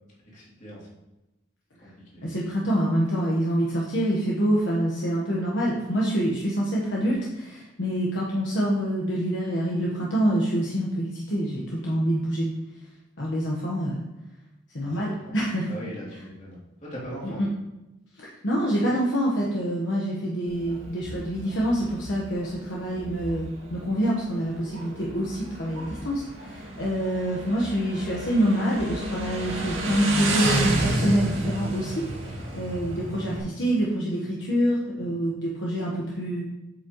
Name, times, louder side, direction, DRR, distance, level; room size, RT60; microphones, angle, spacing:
voice 1, 0.3-0.9 1.8-2.2 14.8-15.4 15.7-17.4, equal, 40° left, -6 dB, 3.1 m, -40 dB
voice 2, 2.2-12.5 13.2-14.0 14.7-15.7 17.2-17.5 18.2-36.5, equal, 65° left, -4 dB, 1.3 m, -26 dB
Motorcycle, 20.5-33.4, right 1 dB, 85° right, 2.2 m, -31 dB
8.5 x 7.6 x 3.1 m, 0.98 s
head